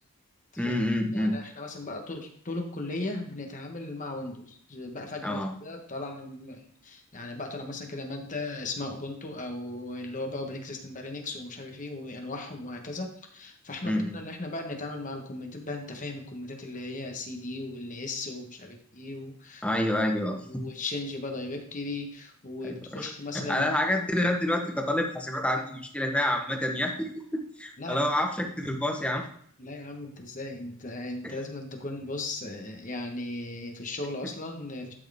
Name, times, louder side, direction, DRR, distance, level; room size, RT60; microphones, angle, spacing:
voice 1, 0.6-1.4 5.2-5.5 13.8-14.2 19.6-20.6 22.9-23.0 23.5-29.2 31.2-31.3, left 1 dB, 5° left, 2 dB, 0.9 m, -28 dB
voice 2, 1.1-19.7 20.4-23.7 27.8-28.1 28.4-28.5 29.6-34.9, left 2 dB, 35° left, 3 dB, 1.2 m, -37 dB
12.0 x 4.5 x 3.5 m, 0.64 s
head